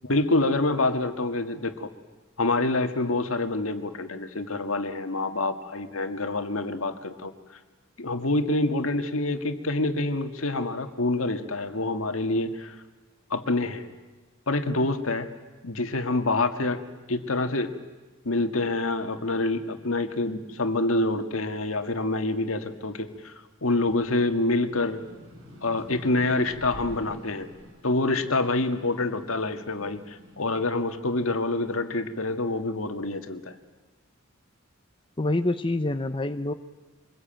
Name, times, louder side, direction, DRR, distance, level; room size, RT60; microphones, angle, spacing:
voice 1, 0.1-1.9 2.4-7.3 8.0-12.8 13.3-13.9 14.5-15.3 15.6-16.8 17.1-17.8 18.2-25.0 25.6-27.5 27.8-33.6, left 2 dB, 75° left, 7 dB, 1.9 m, -26 dB
sound 1, 21.6-23.3 23.7-30.4, equal, 90° right, 5.9 m, -48 dB
voice 2, 35.2-36.5, left 2 dB, 25° left, 8 dB, 0.8 m, -26 dB
25.0 x 21.5 x 9.0 m, 1.3 s
head